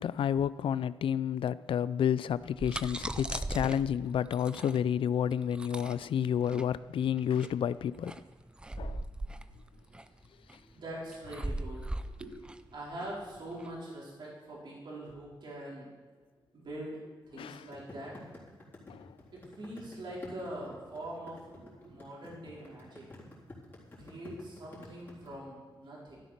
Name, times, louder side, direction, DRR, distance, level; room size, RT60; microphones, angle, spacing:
voice 1, 0.0-8.2 8.8-9.0 17.3-17.7 18.9-19.1, left 9 dB, 85° left, 0.4 m, -30 dB
sound 1, 2.3-13.7, right 1 dB, 10° right, 0.5 m, -40 dB
voice 2, 10.7-12.3 12.7-15.9 16.5-18.1 19.3-23.1 24.0-26.2, right 1 dB, 60° right, 4.6 m, -43 dB
sound 2, 17.7-25.3, left 2 dB, 25° left, 3.9 m, -50 dB
13.0 x 12.0 x 5.9 m
wide cardioid pair, 150°, 9 cm